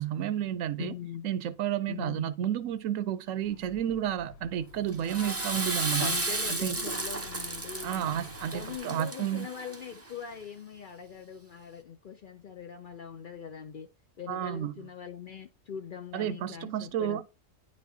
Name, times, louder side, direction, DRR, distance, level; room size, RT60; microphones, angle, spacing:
voice 1, 0.0-0.9 1.2-6.1 6.6-6.7 7.8-9.5 14.3-14.7 16.1-17.2, right 10 dB, 75° right, 0.9 m, -31 dB
voice 2, 0.8-1.3 1.9-2.3 6.0-8.2 8.5-13.9 14.2-17.3, left 8 dB, 60° left, 0.5 m, -42 dB
Vehicle horn car horn honking / Traffic noise roadway noise, 3.4-8.8, left 5 dB, 80° left, 1.2 m, -50 dB
Water / Toilet flush, 4.9-10.1, right 2 dB, 20° right, 0.4 m, -34 dB
9.9 x 4.2 x 2.7 m
omnidirectional pair, 1.4 m